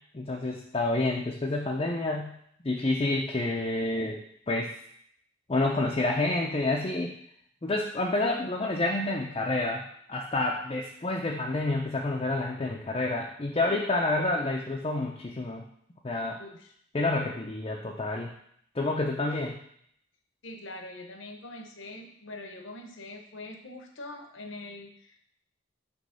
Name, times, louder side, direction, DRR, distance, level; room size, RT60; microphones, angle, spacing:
voice 1, 0.1-2.3 2.6-4.2 4.5-4.7 5.5-7.1 7.6-9.8 10.1-15.6 16.0-16.4 16.9-18.3 18.8-19.6, left 2 dB, 30° left, -1 dB, 0.5 m, -28 dB
voice 2, 16.4-16.7 17.1-17.3 20.4-25.2, left 2 dB, 70° left, 4 dB, 0.9 m, -43 dB
6.2 x 3.1 x 5.6 m, 0.68 s
head